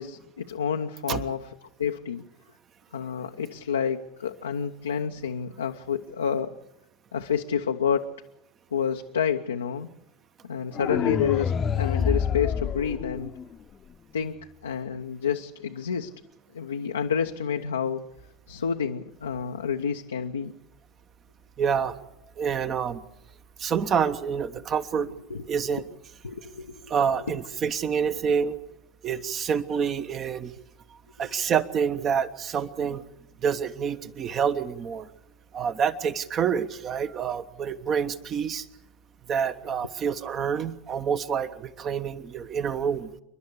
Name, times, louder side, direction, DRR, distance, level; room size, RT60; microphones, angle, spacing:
voice 1, 0.0-1.5 1.8-2.3 2.9-6.6 7.1-8.1 8.7-9.9 10.5-13.3 14.1-16.1 16.5-18.1 18.5-20.5 25.3-25.5 25.7-25.8 26.2-26.9 27.3-27.4 28.3-28.4 31.2-31.3, left 7 dB, 80° left, 4 dB, 0.7 m, -29 dB
sound 1, 10.7-13.7, left 7 dB, 30° left, 0.9 m, -27 dB
voice 2, 21.6-21.9 22.4-23.0 23.6-25.1 25.5-25.8 26.9-28.6 29.0-30.5 31.2-33.0 33.4-35.1 35.5-38.7 39.3-43.1, right 7 dB, 35° right, 11 dB, 1.2 m, -27 dB
27.5 x 11.5 x 8.3 m, 0.85 s
figure-of-eight pair, 75°, 0 cm